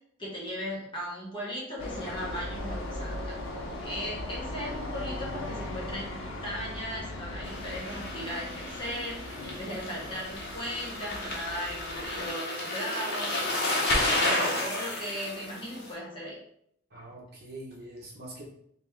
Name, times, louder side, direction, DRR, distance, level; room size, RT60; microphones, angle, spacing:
voice 1, 0.2-9.2 9.5-13.5 14.1-16.4, equal, 25° left, -5 dB, 1.0 m, -37 dB
sound 1, 1.8-12.3, left 1 dB, 85° left, 0.6 m, -38 dB
sound 2, 7.4-15.9, left 1 dB, 55° left, 0.8 m, -32 dB
voice 2, 16.9-18.5, right 1 dB, 50° right, -3 dB, 1.0 m, -44 dB
3.0 x 2.9 x 3.5 m, 0.70 s
head